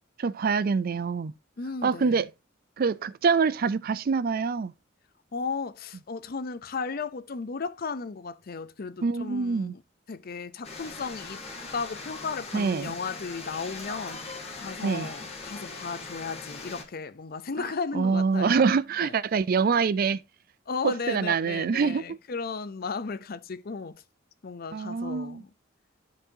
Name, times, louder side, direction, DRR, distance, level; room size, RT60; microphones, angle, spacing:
voice 1, 0.2-1.3 1.8-2.3 2.8-4.7 9.0-9.7 12.5-13.0 14.8-15.1 17.6-20.2 20.8-22.0 24.7-25.4, right 5 dB, 50° right, 0.4 m, -25 dB
voice 2, 1.6-2.2 5.3-9.8 10.1-11.4 11.7-14.2 14.5-18.6 19.0-19.1 20.7-24.0 24.4-25.5, left 4 dB, 50° left, 0.6 m, -35 dB
sound 1, 10.6-16.8, left 3 dB, 35° left, 1.7 m, -40 dB
13.0 x 4.8 x 2.7 m
head